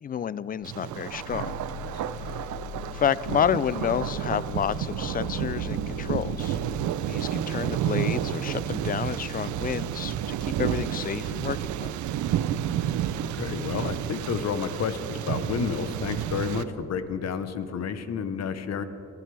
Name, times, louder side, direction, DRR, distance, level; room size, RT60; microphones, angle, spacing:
voice 1, 0.0-1.6 2.3-2.5 2.9-6.6 7.1-12.0, left 8 dB, 30° left, 19 dB, 0.4 m, -30 dB
Growling, 0.6-7.0, left 12 dB, 90° left, 0.5 m, -41 dB
Thunder, 0.6-16.6, right 10 dB, 75° right, 0.7 m, -30 dB
voice 2, 1.8-2.2 13.1-18.8, left 6 dB, 60° left, 10 dB, 1.1 m, -31 dB
25.0 x 12.0 x 3.4 m, 3.0 s
cardioid pair, 90°, 30 cm